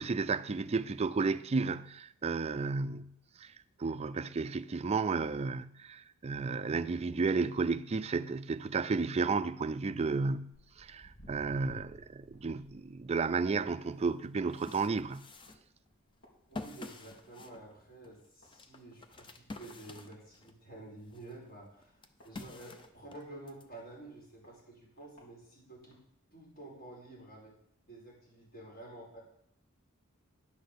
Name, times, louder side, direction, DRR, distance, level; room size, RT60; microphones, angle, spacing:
voice 1, 0.0-3.1 3.4-3.5 3.8-15.3, right 4 dB, 30° right, 0.4 m, -32 dB
Walk footsteps, 10.5-17.2 17.5-17.9 18.4-18.5 19.2-19.3 19.7-19.8 19.9-20.0 20.6-20.8 21.4-23.0 23.6-23.7 24.4-24.5 25.0-25.2 25.9-26.0, equal, 80° left, 3.9 m, -57 dB
sound 1, 13.7-13.8 14.2-20.6 21.1-23.7, left 2 dB, 25° left, 0.6 m, -49 dB
voice 2, 16.5-26.0 26.3-27.5 27.9-29.2, right 2 dB, 50° left, 5.0 m, -50 dB
10.5 x 6.2 x 6.8 m
head